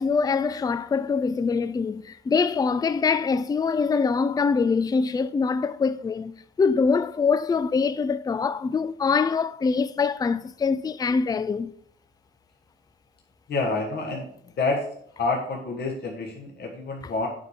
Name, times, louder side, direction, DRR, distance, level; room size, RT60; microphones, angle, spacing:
voice 1, 0.0-11.7, left 5 dB, 20° left, 0.4 m, -24 dB
voice 2, 13.5-14.3 14.6-14.8 15.2-17.3, left 3 dB, 55° left, 1.6 m, -28 dB
8.4 x 4.8 x 5.1 m
cardioid pair, 90°, 20 cm